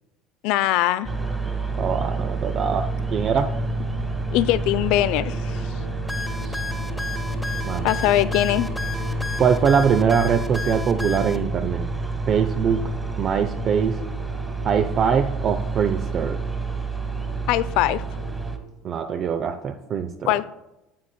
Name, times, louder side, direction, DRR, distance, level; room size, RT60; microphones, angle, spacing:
voice 1, 0.4-1.1 4.3-5.6 7.8-8.7 17.5-18.0 20.3-20.5, left 15 dB, 65° left, 0.3 m, -21 dB
sound 1, 1.0-18.6, right 2 dB, 5° right, 1.4 m, -28 dB
voice 2, 1.8-3.5 6.4-6.6 7.7-7.9 9.4-11.9 12.3-12.8 13.2-14.0 14.6-16.4 18.8-20.3, right 7 dB, 45° right, 0.5 m, -22 dB
sound 2, 6.1-11.4, left 3 dB, 10° left, 0.9 m, -33 dB
9.2 x 8.2 x 2.3 m
hypercardioid pair, 65°, 0 cm